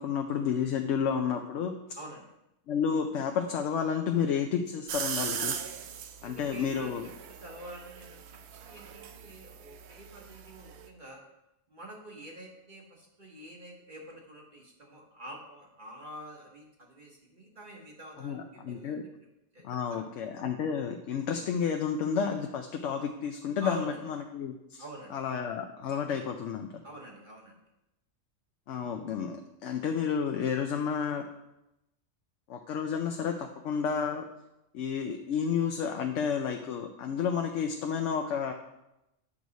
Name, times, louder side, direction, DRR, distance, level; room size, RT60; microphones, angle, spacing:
voice 1, 0.0-1.7 2.7-5.6 6.2-7.0 18.2-19.0 19.6-24.8 25.1-26.7 28.7-31.3 32.5-34.3 34.7-38.5, left 7 dB, 75° left, 5 dB, 0.9 m, -31 dB
voice 2, 1.9-2.3 6.2-11.2 11.7-19.1 19.5-19.6 19.9-20.1 23.6-24.0 24.8-25.1 26.8-27.6, right 1 dB, 40° right, -1 dB, 1.3 m, -46 dB
sound 1, 4.9-10.9, right 8 dB, 65° right, 0.8 m, -39 dB
8.6 x 6.2 x 4.0 m, 0.90 s
omnidirectional pair, 1.3 m